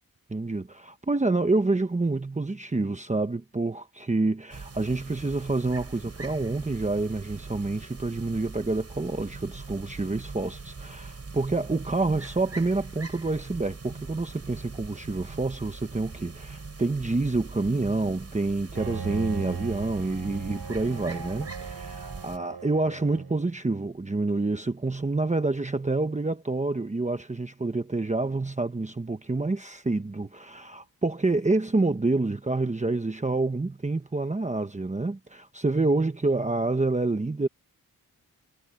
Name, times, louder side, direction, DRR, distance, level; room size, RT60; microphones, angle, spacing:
voice 1, 0.3-37.5, right 3 dB, 20° right, 1.1 m, -28 dB
sound 1, 4.5-22.4, right 4 dB, 40° right, 7.8 m, -42 dB
Bowed string instrument, 18.7-23.5, right 6 dB, 80° right, 7.2 m, -37 dB
wide cardioid pair, 135°, 37 cm